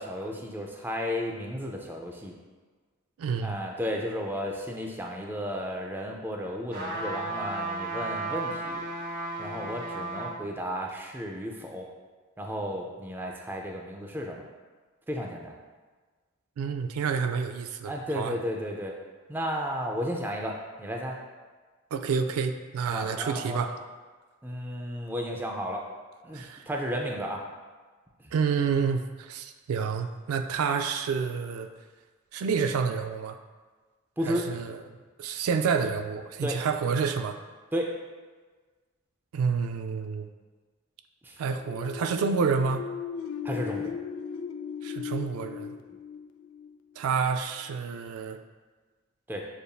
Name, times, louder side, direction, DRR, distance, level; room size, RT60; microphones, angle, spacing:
voice 1, 0.0-2.3 3.4-8.8 9.4-11.9 12.4-14.5 15.1-15.6 17.8-19.0 19.3-21.2 22.9-23.7 24.4-25.8 26.2-27.4 34.2-34.5 36.4-36.6 37.7-37.9 41.2-41.4 43.4-44.0 49.3-49.4, equal, 10° right, 0 dB, 0.4 m, -33 dB
voice 2, 3.2-3.6 16.6-18.4 21.9-23.7 26.3-26.6 28.3-31.7 32.3-33.4 34.3-34.8 35.2-37.4 39.3-40.3 41.4-42.9 44.8-45.8 47.0-48.4, right 5 dB, 85° right, 7 dB, 0.3 m, -29 dB
sound 1, 6.7-10.4 10.9-11.0, right 2 dB, 45° right, 0.8 m, -34 dB
sound 2, 41.5-47.2, left 7 dB, 70° left, 0.3 m, -37 dB
6.9 x 2.6 x 2.3 m, 1.4 s
head